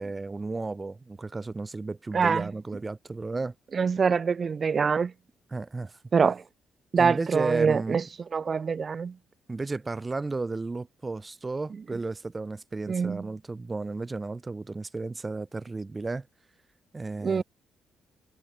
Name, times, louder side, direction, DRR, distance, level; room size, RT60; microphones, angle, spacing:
voice 1, 0.0-3.5 5.5-6.0 7.0-8.0 9.5-16.3 16.9-17.4, right 3 dB, 25° right, 3.6 m, -33 dB
voice 2, 2.1-2.5 3.7-5.1 6.1-6.4 6.9-8.0 8.3-9.1 12.9-13.2 17.2-17.4, right 5 dB, 40° right, 0.7 m, -24 dB
cardioid pair, 90°, 0 cm